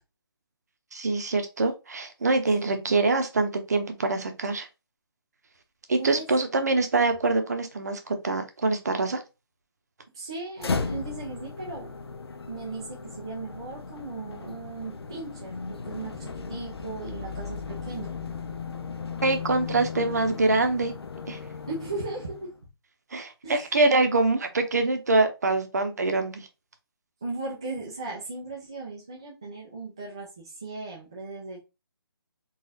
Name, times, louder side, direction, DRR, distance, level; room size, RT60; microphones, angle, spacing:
voice 1, 0.9-4.7 5.9-9.2 19.2-20.9 21.3-21.4 23.1-26.5, right 3 dB, 45° right, 0.8 m, -24 dB
voice 2, 2.6-2.9 6.0-6.3 10.1-11.9 12.5-18.1 21.7-22.5 23.4-23.7 27.2-31.6, right 3 dB, 10° right, 0.4 m, -37 dB
sound 1, 10.6-22.6, left 5 dB, 90° left, 0.7 m, -36 dB
4.0 x 2.4 x 4.0 m
hypercardioid pair, 175°, 13 cm